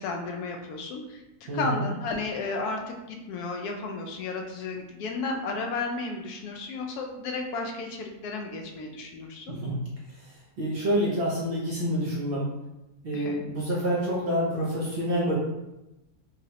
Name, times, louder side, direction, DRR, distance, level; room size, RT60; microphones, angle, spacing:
voice 1, 0.0-9.6 13.1-13.4, left 3 dB, 75° left, 2 dB, 1.1 m, -33 dB
voice 2, 1.5-1.8 9.5-9.8 10.6-12.5 13.0-15.4, equal, 60° right, -5 dB, 0.6 m, -27 dB
3.8 x 2.0 x 2.7 m, 0.97 s
omnidirectional pair, 1.7 m